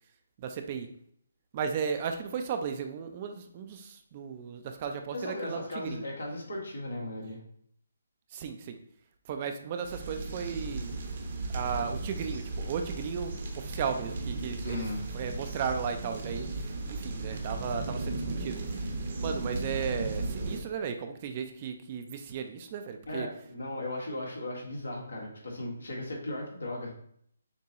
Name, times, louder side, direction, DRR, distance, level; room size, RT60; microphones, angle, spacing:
voice 1, 0.4-0.9 1.5-6.0 8.3-8.8 9.3-10.9 11.5-14.8 15.1-18.6 19.2-23.3, right 6 dB, 35° right, 6 dB, 0.4 m, -35 dB
voice 2, 5.1-7.4 14.6-15.0 23.1-26.9, left 1 dB, 85° left, -2 dB, 1.6 m, -36 dB
sound 1, 9.8-20.6, right 2 dB, 50° right, 0.9 m, -36 dB
6.6 x 2.2 x 2.9 m, 0.65 s
figure-of-eight pair, 150°, 0 cm